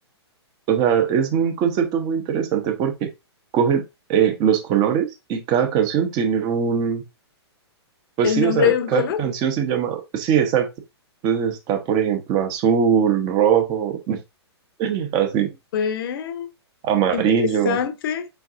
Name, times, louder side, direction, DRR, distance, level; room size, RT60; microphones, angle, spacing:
voice 1, 0.7-3.1 3.5-3.8 4.1-7.0 8.2-10.7 11.2-14.2 14.8-15.5 16.8-17.8, right 8 dB, 30° right, 0.9 m, -21 dB
voice 2, 8.2-9.2 15.7-16.5 17.1-18.3, left 10 dB, 55° left, 0.8 m, -24 dB
4.5 x 4.5 x 2.5 m
hypercardioid pair, 130°, 14 cm